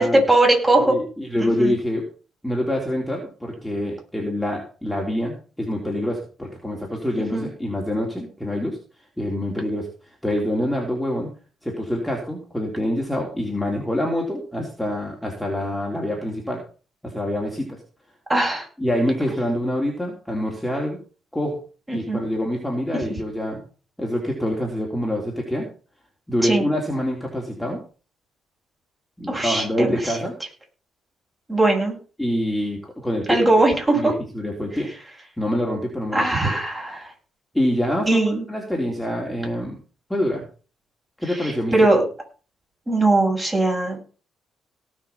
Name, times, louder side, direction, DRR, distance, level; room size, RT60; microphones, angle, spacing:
voice 1, 0.0-1.0 1.4-1.7 7.3-7.5 18.3-18.7 21.9-22.2 26.4-26.7 29.3-30.1 31.5-32.0 33.3-34.1 36.1-37.1 38.0-38.4 41.3-42.0 42.9-44.0, right 2 dB, 15° right, 1 dB, 7.2 m, -20 dB
voice 2, 0.8-2.0 2.4-8.8 9.2-9.9 10.2-11.3 11.6-16.6 17.0-17.8 18.8-21.0 21.3-21.6 21.9-23.6 24.0-25.7 26.3-27.8 29.2-30.4 32.2-33.5 33.9-34.9 35.4-36.6 37.5-39.8 40.1-40.4 41.2-41.7, left 1 dB, 5° left, -1 dB, 3.9 m, -26 dB
18.0 x 6.3 x 5.9 m, 0.38 s
cardioid pair, 90°, 0 cm